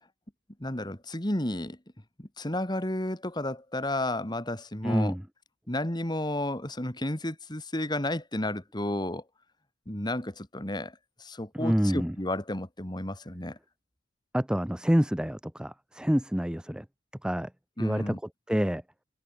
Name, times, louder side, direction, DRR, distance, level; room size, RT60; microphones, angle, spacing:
voice 1, 0.6-1.8 2.2-5.1 5.7-9.2 9.9-10.9 11.2-13.6 17.8-18.2, left 1 dB, 20° left, 2.6 m, -32 dB
voice 2, 4.8-5.2 11.5-12.2 14.3-16.9 17.2-17.5 17.8-18.2 18.5-18.8, equal, 5° right, 0.5 m, -27 dB
head